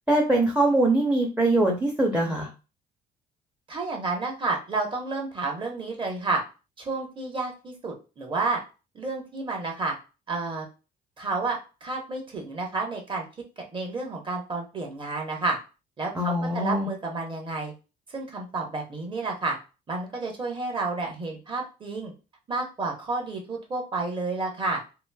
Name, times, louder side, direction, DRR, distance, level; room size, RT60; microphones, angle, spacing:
voice 1, 0.1-2.5 16.1-16.9, right 1 dB, 10° right, -1 dB, 0.6 m, -22 dB
voice 2, 3.7-6.4 6.8-8.6 8.9-9.9 10.3-10.7 11.2-13.2 13.6-15.6 16.0-17.7 18.1-19.6 19.9-22.1 22.5-24.8, right 3 dB, 30° right, 1 dB, 1.0 m, -30 dB
3.0 x 2.5 x 2.2 m, 0.31 s
cardioid pair, 110°, 17 cm